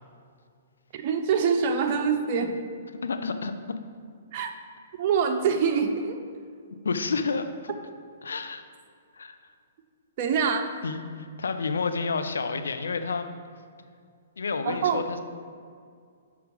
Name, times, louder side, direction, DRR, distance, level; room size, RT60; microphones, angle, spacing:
voice 1, 0.9-2.5 4.3-4.5 5.0-6.2 10.2-10.7 14.6-15.1, right 6 dB, 45° right, 4 dB, 0.6 m, -25 dB
voice 2, 3.0-3.8 6.8-7.7 8.2-8.6 9.2-9.4 10.8-13.3 14.4-15.2, left 4 dB, 80° left, 8 dB, 0.5 m, -30 dB
5.9 x 4.6 x 5.4 m, 2.2 s
hypercardioid pair, 125°, 0 cm